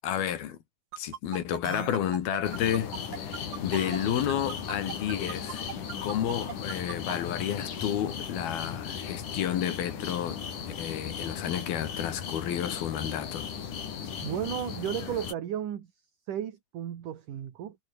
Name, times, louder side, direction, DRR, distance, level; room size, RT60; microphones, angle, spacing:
voice 1, 0.0-0.6 1.0-5.7 6.0-10.5 10.8-13.5, left 10 dB, 75° left, 3.9 m, -31 dB
sound 1, 0.9-7.1, right 11 dB, 80° right, 3.7 m, -39 dB
sound 2, 2.4-15.3, left 7 dB, 55° left, 4.3 m, -37 dB
voice 2, 14.2-15.9 16.3-17.8, right 10 dB, 60° right, 3.3 m, -34 dB
omnidirectional pair, 4.3 m